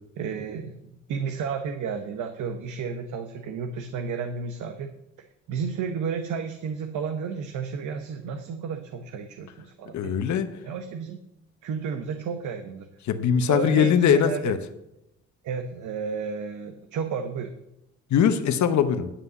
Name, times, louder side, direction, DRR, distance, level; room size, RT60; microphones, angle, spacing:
voice 1, 0.2-4.9 5.5-10.1 10.6-11.2 11.6-12.9 13.5-14.4 15.4-17.5, right 6 dB, 75° right, 7 dB, 0.9 m, -32 dB
voice 2, 9.9-10.5 13.1-14.6 18.1-19.1, left 8 dB, 70° left, 8 dB, 1.0 m, -21 dB
10.0 x 5.6 x 8.3 m, 0.87 s
cardioid pair, 90°, 30 cm